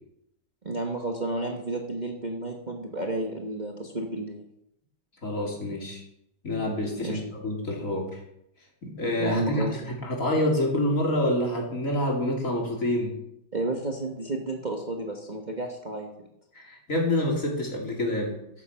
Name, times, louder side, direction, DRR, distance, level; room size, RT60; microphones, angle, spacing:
voice 1, 0.6-4.4 7.0-7.2 9.2-9.8 13.5-16.3, right 2 dB, 30° right, 1 dB, 1.3 m, -31 dB
voice 2, 5.2-6.0 6.4-8.2 8.8-13.2 16.6-18.4, left 1 dB, 50° left, -1 dB, 3.5 m, -27 dB
14.5 x 8.2 x 5.7 m, 0.77 s
omnidirectional pair, 1.8 m